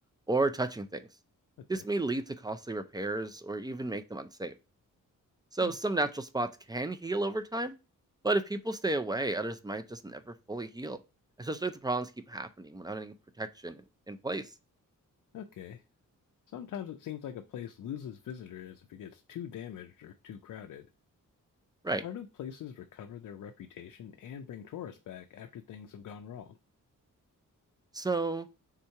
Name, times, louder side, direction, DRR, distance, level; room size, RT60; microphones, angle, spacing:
voice 1, 0.3-1.1 1.7-4.5 5.5-7.7 8.2-11.0 11.4-14.5 21.8-22.0 27.9-28.5, right 2 dB, 15° right, 10 dB, 0.3 m, -33 dB
voice 2, 15.3-15.8 16.5-20.9 21.9-26.6, left 9 dB, 65° left, 6 dB, 0.5 m, -43 dB
3.6 x 2.8 x 4.4 m, 0.29 s
wide cardioid pair, 130°, 32 cm